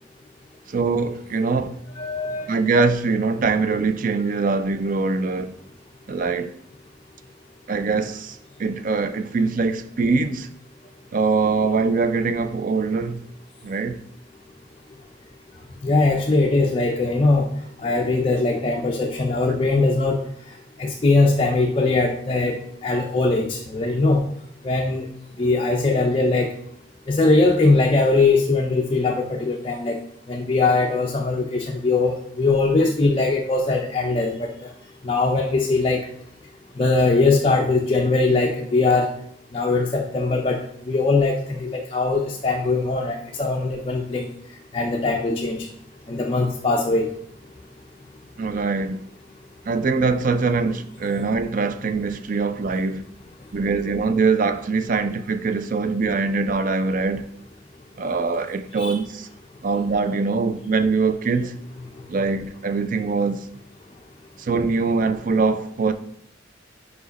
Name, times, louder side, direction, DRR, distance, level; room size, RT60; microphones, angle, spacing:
voice 1, 0.7-1.7 2.5-5.5 6.1-6.6 7.7-10.5 11.1-13.2 13.6-14.0 19.5-19.6 48.4-49.0 49.7-53.0 53.5-57.2 58.0-59.3 59.6-61.6 62.1-63.4 64.4-65.9, right 4 dB, 45° right, 0.4 m, -23 dB
voice 2, 2.0-2.5 15.8-17.5 17.8-20.2 20.8-22.6 22.8-24.2 24.6-25.1 25.4-26.5 27.1-30.0 30.3-34.5 35.0-36.0 36.8-39.1 39.5-44.3 44.7-45.7 46.1-47.1 53.9-54.0 58.8-59.0, left 3 dB, 30° left, 0.5 m, -21 dB
5.0 x 4.8 x 4.0 m
head